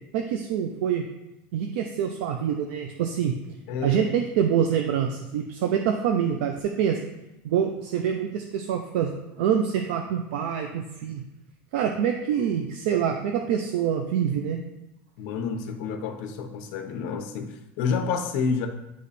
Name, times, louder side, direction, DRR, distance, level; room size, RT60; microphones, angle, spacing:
voice 1, 0.1-1.0 1.5-3.3 3.8-7.0 7.4-9.1 9.4-11.2 11.7-14.6, right 8 dB, 75° right, 4 dB, 0.5 m, -25 dB
voice 2, 3.7-4.2 15.2-18.7, left 5 dB, 60° left, 5 dB, 0.8 m, -29 dB
9.4 x 3.1 x 4.1 m, 0.93 s
supercardioid pair, 160°, 6 cm